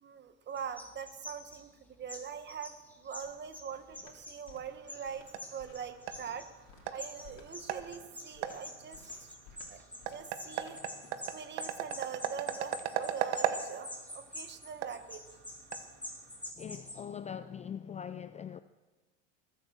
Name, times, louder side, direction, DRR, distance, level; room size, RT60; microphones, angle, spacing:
voice 1, 0.0-5.2 5.5-6.5 6.9-9.4 9.7-9.8 10.1-10.8 11.3-15.2, right 7 dB, 30° right, 1.3 m, -43 dB
sound 1, 0.6-1.6 2.1-3.7 3.9-4.5 4.9-6.5 6.9-17.0, left 1 dB, 5° left, 3.2 m, -46 dB
sound 2, 2.5-11.4, left 6 dB, 70° left, 3.0 m, -59 dB
sound 3, 4.7-16.5, right 10 dB, 80° right, 1.3 m, -39 dB
voice 2, 16.6-18.6, left 8 dB, 20° left, 0.4 m, -42 dB
21.0 x 8.4 x 6.6 m
supercardioid pair, 110°, 35 cm